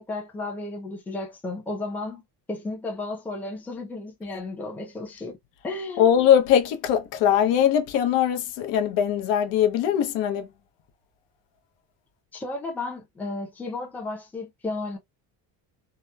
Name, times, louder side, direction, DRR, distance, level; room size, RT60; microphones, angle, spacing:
voice 1, 0.0-2.2 2.5-5.4 5.6-6.1 12.3-15.0, left 2 dB, 5° left, 0.5 m, -33 dB
voice 2, 6.0-10.5, left 9 dB, 80° left, 0.8 m, -21 dB
2.9 x 2.1 x 2.2 m
cardioid pair, 145°, 43 cm